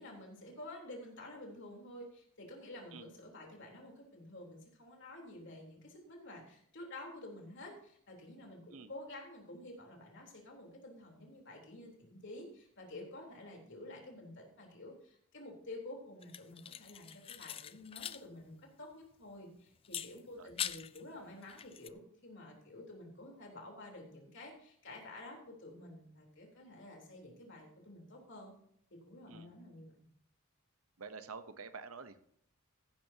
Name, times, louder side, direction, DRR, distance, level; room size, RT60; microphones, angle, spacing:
voice 1, 0.0-28.5 28.9-29.9, left 1 dB, 60° left, 0 dB, 3.5 m, -50 dB
sound 1, 16.2-18.2 18.5-18.6 19.8-21.0 21.4-21.9, left 9 dB, 25° left, 0.3 m, -43 dB
voice 2, 31.0-32.2, right 5 dB, 75° right, 10 dB, 0.9 m, -48 dB
15.5 x 10.5 x 2.8 m, 0.67 s
head